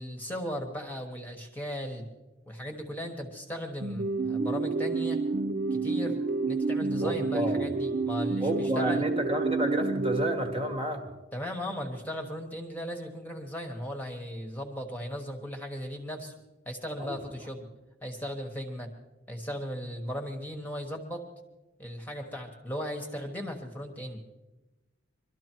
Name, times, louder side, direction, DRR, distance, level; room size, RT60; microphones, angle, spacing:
voice 1, 0.0-2.1 2.5-5.2 5.7-9.0 11.3-16.3 16.6-17.6 18.0-18.9 19.3-21.2 21.8-24.2, equal, 10° left, 3 dB, 1.3 m, -37 dB
sound 1, 3.8-11.0, right 3 dB, 45° right, 0.5 m, -29 dB
voice 2, 7.0-7.7 8.4-11.1 17.0-17.2, right 1 dB, 25° right, 4 dB, 1.4 m, -30 dB
22.5 x 13.0 x 4.6 m, 1.1 s
head